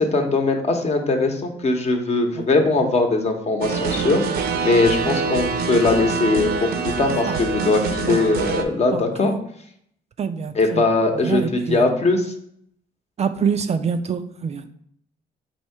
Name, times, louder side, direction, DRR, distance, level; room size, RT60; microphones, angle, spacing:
voice 1, 0.1-4.4 4.6-9.3 10.5-12.3, left 3 dB, 40° left, 4 dB, 0.9 m, -20 dB
sound 1, 3.6-8.6, right 5 dB, 70° right, 0.6 m, -25 dB
voice 2, 8.9-9.4 10.2-10.8 11.2-11.9 13.2-14.7, right 6 dB, 40° right, 8 dB, 0.4 m, -26 dB
4.3 x 2.7 x 4.4 m, 0.68 s
cardioid pair, 85°, 17 cm